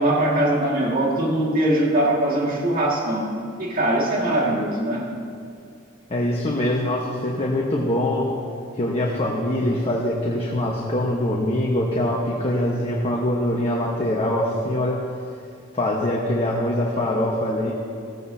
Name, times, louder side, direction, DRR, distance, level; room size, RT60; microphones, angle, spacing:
voice 1, 0.0-3.3 3.6-5.1, right 1 dB, 45° right, -3 dB, 2.1 m, -21 dB
voice 2, 6.1-8.3 8.7-15.0 15.7-17.7, left 1 dB, 30° left, -3 dB, 1.2 m, -23 dB
16.5 x 15.0 x 2.8 m, 2.4 s
head